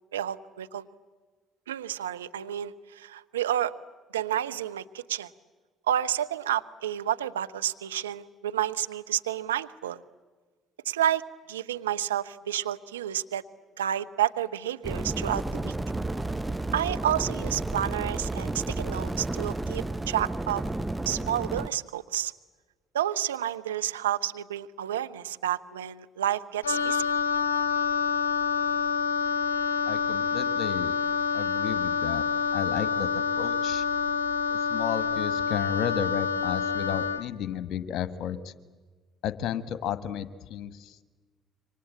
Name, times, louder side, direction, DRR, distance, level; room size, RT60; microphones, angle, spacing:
voice 1, 0.1-0.9 1.7-3.7 4.1-5.3 5.9-10.0 10.9-13.4 13.8-15.7 16.7-20.6 21.1-22.3 22.9-27.1, right 11 dB, 85° right, 10 dB, 0.7 m, -30 dB
sound 1, 14.8-21.7, right 2 dB, 10° right, 0.8 m, -32 dB
Wind instrument woodwind instrument, 26.6-37.3, left 6 dB, 90° left, 0.8 m, -27 dB
voice 2, 29.9-31.0 31.3-32.2 32.5-33.1 33.4-33.8 34.5-38.5 39.2-41.0, left 9 dB, 60° left, 14 dB, 1.5 m, -33 dB
27.0 x 24.5 x 8.4 m, 1.4 s
hypercardioid pair, 55°, 0 cm